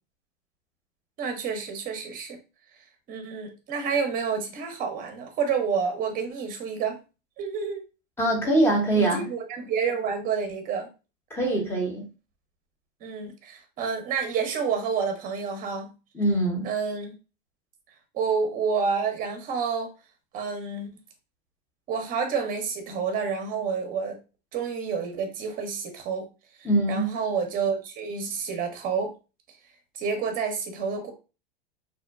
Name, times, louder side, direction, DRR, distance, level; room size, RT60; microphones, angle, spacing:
voice 1, 1.2-2.4 3.1-7.0 7.4-7.8 9.0-10.9 13.0-15.9 16.6-17.1 18.1-19.9 20.3-20.9 21.9-24.2 24.5-26.3 26.6-29.1 29.9-31.1, right 5 dB, 30° right, 5 dB, 0.7 m, -29 dB
voice 2, 8.2-9.2 11.3-12.1 16.1-16.7 26.6-27.1, right 1 dB, 10° left, 0 dB, 0.7 m, -23 dB
2.7 x 2.1 x 2.2 m, 0.31 s
hypercardioid pair, 120°, 30 cm